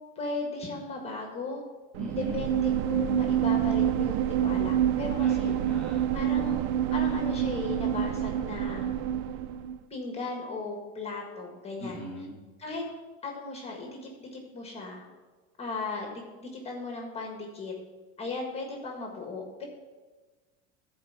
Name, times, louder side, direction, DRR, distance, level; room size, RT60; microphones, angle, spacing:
voice 1, 0.1-1.6 2.1-5.5 6.1-6.6 6.9-8.9 9.9-12.0 12.6-12.8 13.2-15.0 15.6-17.7 18.2-19.6, left 3 dB, 20° left, 1 dB, 1.5 m, -36 dB
voice 2, 1.9-2.5 5.2-6.7 11.8-12.4, equal, 5° left, -4 dB, 1.5 m, -41 dB
sound 1, 1.9-9.8, right 10 dB, 50° right, 0.4 m, -27 dB
11.5 x 4.7 x 7.4 m, 1.3 s
cardioid pair, 155°, 31 cm